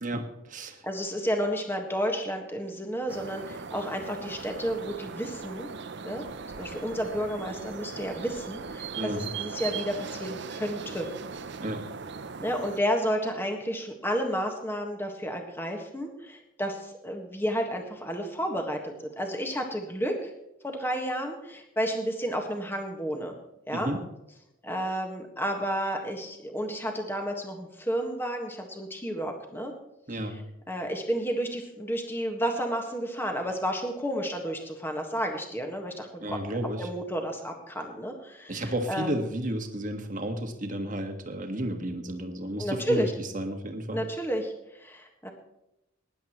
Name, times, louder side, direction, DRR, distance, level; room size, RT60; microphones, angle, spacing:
voice 1, 0.0-0.8 9.0-9.3 11.6-11.9 23.7-24.0 30.1-30.4 36.2-36.9 38.5-44.1, right 1 dB, 40° right, 5 dB, 1.5 m, -32 dB
voice 2, 0.8-5.7 6.0-6.2 6.6-11.1 12.4-20.3 20.6-23.3 23.7-23.9 24.6-29.7 30.7-36.4 36.8-39.2 42.6-43.1 43.9-45.3, equal, 10° left, 3 dB, 1.6 m, -31 dB
sound 1, 3.1-12.8, right 5 dB, 55° right, 0.6 m, -39 dB
19.5 x 10.5 x 3.1 m, 0.87 s
head